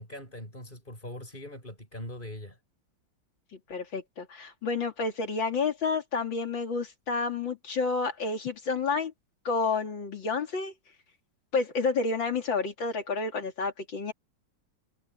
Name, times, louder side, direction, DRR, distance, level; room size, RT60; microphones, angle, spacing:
voice 1, 0.0-2.6, left 1 dB, 25° left, 6.7 m, -41 dB
voice 2, 3.7-9.1 9.5-10.7 11.5-14.1, left 4 dB, 85° left, 3.4 m, -30 dB
omnidirectional pair, 2.0 m